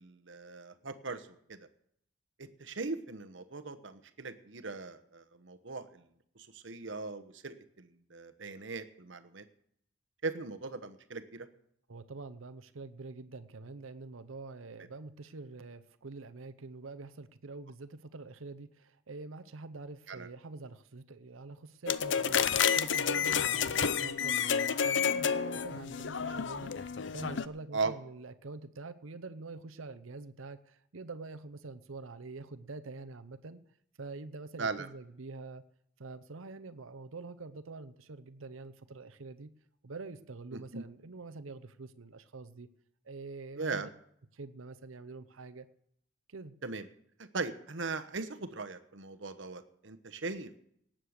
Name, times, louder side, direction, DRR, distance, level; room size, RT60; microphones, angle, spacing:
voice 1, 0.0-1.7 2.4-6.1 6.4-9.4 10.2-11.5 20.1-20.3 27.7-27.9 34.6-34.9 40.5-40.8 43.6-43.9 46.6-46.9 47.3-50.5, right 4 dB, 65° right, 10 dB, 1.1 m, -39 dB
voice 2, 11.9-33.6 34.0-35.6 36.0-39.5 39.8-42.7 43.0-43.9 44.3-45.7 46.3-46.5, right 3 dB, 85° right, 12 dB, 0.8 m, -46 dB
sound 1, 21.9-27.5, left 7 dB, 65° left, 0.6 m, -30 dB
18.5 x 7.6 x 6.5 m, 0.71 s
head